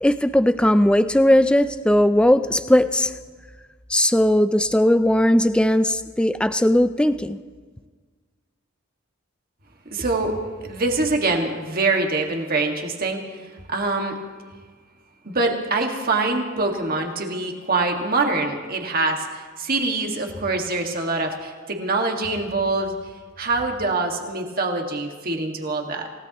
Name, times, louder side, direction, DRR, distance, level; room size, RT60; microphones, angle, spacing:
voice 1, 0.0-3.1 3.9-7.4, left 1 dB, 5° left, 11 dB, 0.4 m, -18 dB
voice 2, 9.9-13.2 13.7-14.2 15.2-22.9 23.4-26.1, right 3 dB, 45° right, 2 dB, 1.9 m, -24 dB
28.0 x 17.0 x 3.0 m, 1.5 s
head